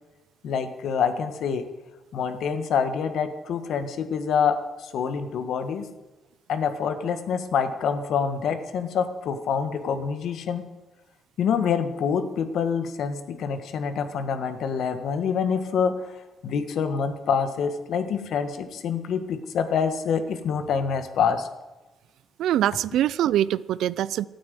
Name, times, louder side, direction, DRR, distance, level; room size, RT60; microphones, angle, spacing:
voice 1, 0.4-1.7 2.1-5.9 6.5-10.6 11.4-16.1 16.4-21.5, left 6 dB, 70° left, 9 dB, 1.5 m, -26 dB
voice 2, 22.4-24.3, right 12 dB, 80° right, 20 dB, 0.4 m, -23 dB
13.0 x 8.8 x 9.4 m, 1.1 s
cardioid pair, 90°, 0 cm